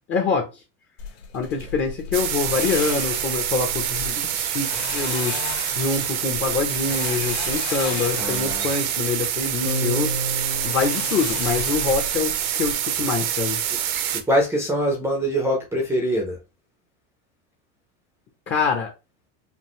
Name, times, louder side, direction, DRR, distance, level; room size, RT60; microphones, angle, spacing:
voice 1, 0.1-0.4 1.3-5.4 5.8-10.1 10.6-13.6 18.5-18.9, left 5 dB, 30° left, 0.7 m, -25 dB
sound 1, 1.0-12.7, left 6 dB, 60° left, 1.5 m, -36 dB
sound 2, 2.1-14.2, right 10 dB, 80° right, 1.0 m, -26 dB
voice 2, 8.1-8.7 13.7-13.8 14.1-16.4, equal, 5° right, 0.6 m, -24 dB
sound 3, 9.6-12.2, equal, 75° left, 1.3 m, -31 dB
5.3 x 2.5 x 3.0 m
cardioid pair, 160°, 42 cm